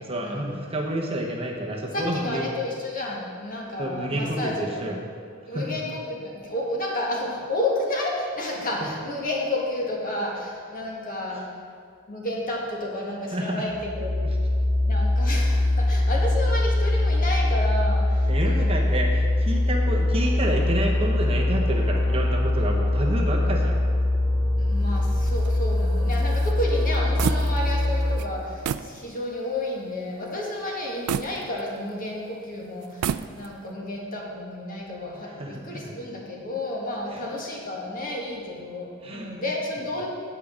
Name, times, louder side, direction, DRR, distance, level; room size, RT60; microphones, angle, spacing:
voice 1, 0.1-2.5 3.8-5.0 5.5-5.8 8.8-8.9 13.3-13.6 18.3-23.8 35.2-35.9 37.1-37.3 39.0-39.4, right 1 dB, 25° right, -1 dB, 0.9 m, -29 dB
voice 2, 1.9-4.8 5.5-11.4 12.1-14.2 14.8-18.9 24.6-33.1 33.3-40.1, left 1 dB, 40° left, -2 dB, 1.5 m, -31 dB
sound 1, 13.7-28.1, left 1 dB, 5° left, 2.6 m, -22 dB
sound 2, 25.1-27.9 28.2-28.3 28.6-29.0 29.4-29.5 31.1-32.1 32.8-33.7, right 8 dB, 90° right, 0.3 m, -31 dB
8.5 x 4.9 x 7.1 m, 2.2 s
head